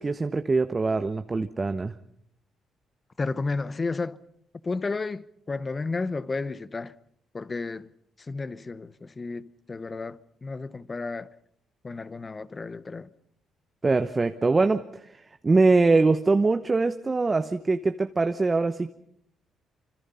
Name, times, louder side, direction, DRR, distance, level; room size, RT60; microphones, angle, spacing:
voice 1, 0.0-1.9 13.8-14.8 15.4-18.9, right 3 dB, 25° right, 0.9 m, -23 dB
voice 2, 3.2-4.2 4.6-6.9 7.3-7.9 8.2-11.3 11.8-13.1, left 3 dB, 30° left, 0.8 m, -32 dB
25.5 x 25.5 x 5.6 m
cardioid pair, 90°, 0 cm